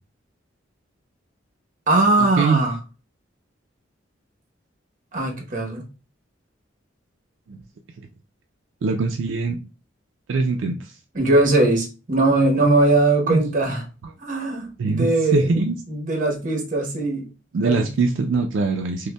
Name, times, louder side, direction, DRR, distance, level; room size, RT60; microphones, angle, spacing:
voice 1, 1.9-2.8 5.1-5.8 11.1-13.8 14.2-15.5 15.9-17.3 17.6-17.9, right 2 dB, 45° right, 0.9 m, -20 dB
voice 2, 8.8-9.6 10.3-10.9 13.3-13.4 14.8-15.1 15.3-15.8 17.5-19.1, right 4 dB, 75° right, 0.4 m, -22 dB
5.2 x 2.1 x 2.2 m
head